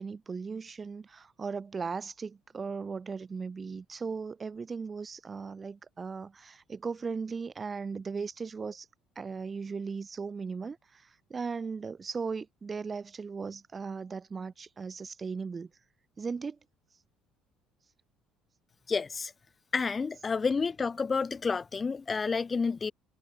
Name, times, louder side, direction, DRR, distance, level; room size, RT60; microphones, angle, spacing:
voice 1, 0.0-8.9 9.1-15.7 16.2-16.6, right 5 dB, 25° right, 1.3 m, -37 dB
voice 2, 18.9-19.3 19.7-22.9, left 5 dB, 25° left, 0.5 m, -30 dB
cardioid pair, 105°, 0 cm